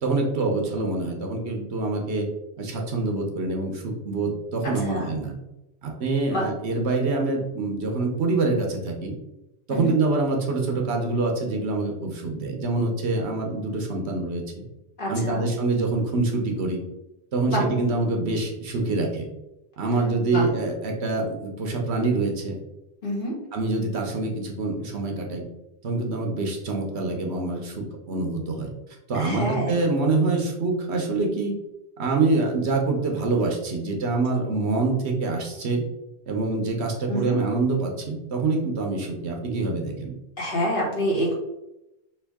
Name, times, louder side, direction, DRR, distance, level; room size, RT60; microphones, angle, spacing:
voice 1, 0.0-2.3 2.6-5.3 5.8-9.1 9.7-14.6 15.1-16.8 17.3-19.3 19.8-22.5 23.5-25.4 25.8-28.7 29.1-31.6 32.0-35.8 36.3-40.1, right 3 dB, 70° right, 1 dB, 1.1 m, -25 dB
voice 2, 4.6-5.1 6.3-6.5 9.7-9.9 15.0-15.5 17.5-17.6 20.3-20.5 23.0-23.3 29.1-29.8 37.1-37.4 40.4-41.3, equal, 50° left, -4 dB, 1.6 m, -27 dB
5.6 x 2.6 x 3.5 m, 0.92 s
omnidirectional pair, 1.1 m